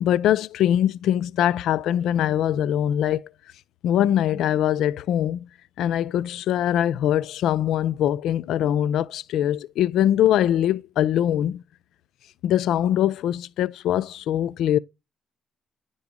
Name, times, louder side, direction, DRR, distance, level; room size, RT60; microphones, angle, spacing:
voice 1, 0.0-3.2 3.8-5.5 5.8-11.6 12.4-14.8, left 11 dB, 80° left, 0.4 m, -22 dB
10.5 x 4.0 x 4.7 m
cardioid pair, 90°, 0 cm